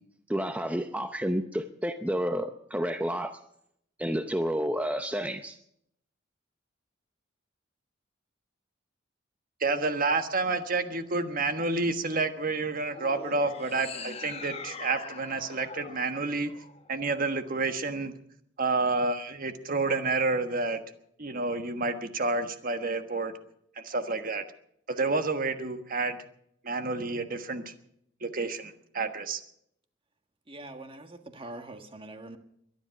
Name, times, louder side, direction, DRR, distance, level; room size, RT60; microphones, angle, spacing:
voice 1, 0.3-3.4 4.0-5.6, equal, 10° right, 8 dB, 0.6 m, -30 dB
voice 2, 9.6-16.5 16.9-18.1 18.6-20.8 21.2-23.3 23.8-24.4 24.9-26.2 26.6-27.7 28.2-29.4, right 3 dB, 50° right, 8 dB, 1.4 m, -29 dB
sound 1, 12.9-17.2, left 4 dB, 35° left, 1.2 m, -43 dB
voice 3, 30.5-32.4, right 2 dB, 30° right, 7 dB, 1.6 m, -43 dB
22.5 x 11.0 x 5.8 m, 0.72 s
head